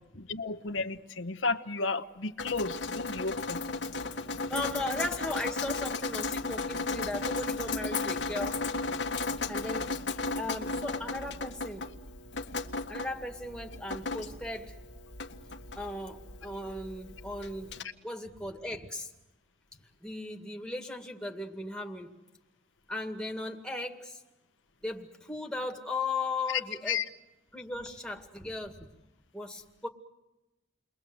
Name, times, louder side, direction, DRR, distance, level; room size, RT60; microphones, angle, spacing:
voice 1, 0.2-3.7 26.9-27.0, left 4 dB, 85° left, 8 dB, 1.1 m, -33 dB
Drip, 2.4-17.8, left 3 dB, 70° left, 1.6 m, -35 dB
voice 2, 4.5-8.6 9.5-11.8 12.9-14.7 15.8-17.8 18.0-19.1 20.0-22.1 22.9-24.2 24.8-27.0 27.5-28.9 29.3-29.9, left 2 dB, 5° left, 3 dB, 2.0 m, -37 dB
30.0 x 22.5 x 7.9 m, 1.0 s
head